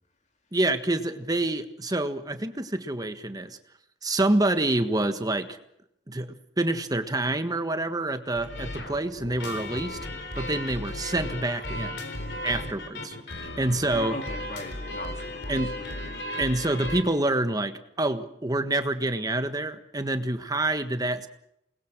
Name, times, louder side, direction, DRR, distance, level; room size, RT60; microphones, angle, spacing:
voice 1, 0.5-3.6 4.0-5.6 6.1-6.3 6.6-10.0 10.3-12.0 12.4-14.2 15.5-15.8 16.4-21.3, right 2 dB, 20° right, 8 dB, 1.5 m, -27 dB
sound 1, 8.3-17.0, left 1 dB, 75° left, 3.8 m, -35 dB
voice 2, 13.7-16.1, left 2 dB, 40° left, 4 dB, 2.5 m, -40 dB
28.0 x 21.0 x 6.2 m, 0.80 s
head